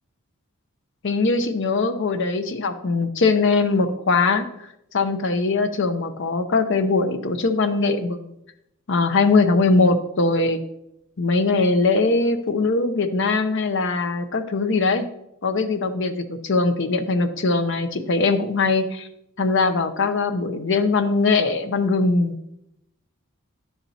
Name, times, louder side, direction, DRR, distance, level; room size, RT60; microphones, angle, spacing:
voice 1, 1.0-4.5 4.9-8.3 8.9-10.6 11.2-15.1 15.4-19.1 19.4-22.4, left 3 dB, 55° left, 9 dB, 0.6 m, -21 dB
10.0 x 7.1 x 2.8 m, 0.82 s
head